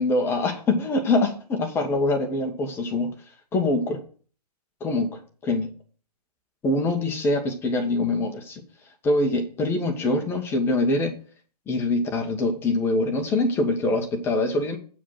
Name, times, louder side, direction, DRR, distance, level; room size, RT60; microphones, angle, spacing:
voice 1, 0.0-3.1 3.5-4.0 4.8-5.7 6.6-8.6 9.0-11.1 11.7-14.8, left 2 dB, 10° left, 4 dB, 1.4 m, -24 dB
8.5 x 5.0 x 7.7 m, 0.41 s
figure-of-eight pair, 130°, 21 cm